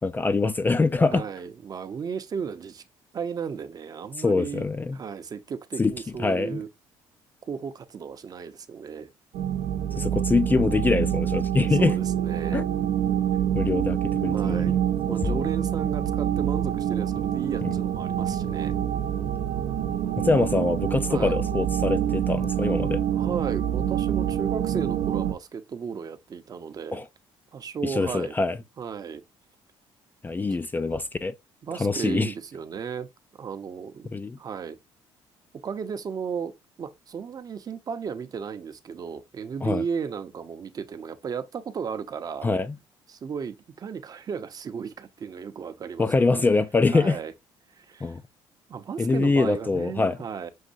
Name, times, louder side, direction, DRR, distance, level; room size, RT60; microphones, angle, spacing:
voice 1, 0.0-1.3 4.2-5.0 5.8-5.9 6.2-6.6 10.0-12.0 12.5-12.6 13.5-14.7 15.2-15.5 20.2-23.0 26.9-27.0 27.8-28.6 30.2-31.4 31.8-32.3 34.1-34.4 39.6-39.8 42.4-42.8 46.0-47.2 48.0-48.2 49.0-50.2, left 3 dB, 20° left, 0.3 m, -24 dB
voice 2, 1.1-2.8 3.1-4.7 4.9-6.7 7.5-9.1 11.7-12.6 14.3-14.8 15.1-18.8 21.1-21.4 23.1-27.0 27.5-28.3 28.8-29.2 31.6-33.1 33.4-34.1 34.4-34.8 35.6-42.5 43.1-46.5 46.9-47.3 47.7-48.2 48.7-50.5, right 6 dB, 40° right, 0.6 m, -34 dB
sound 1, 9.3-25.3, right 10 dB, 85° right, 0.6 m, -26 dB
6.3 x 2.6 x 2.5 m
cardioid pair, 95°, 10 cm